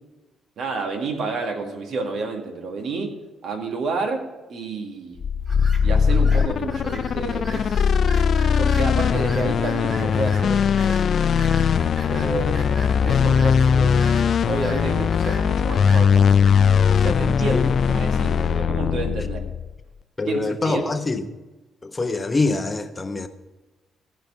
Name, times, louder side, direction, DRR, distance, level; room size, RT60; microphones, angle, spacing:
voice 1, 0.6-3.2 3.4-5.2 5.8-7.9 8.6-11.0 12.1-14.1 14.5-16.5 16.9-19.5 20.3-20.9, right 3 dB, 70° right, 2.0 m, -30 dB
sound 1, 5.2-19.8, left 7 dB, 55° left, 0.3 m, -20 dB
sound 2, 5.4-16.5, right 2 dB, 35° right, 3.2 m, -41 dB
voice 2, 20.2-21.3 21.8-23.3, left 3 dB, 25° left, 0.9 m, -24 dB
15.5 x 5.3 x 6.8 m
cardioid pair, 90°, 0 cm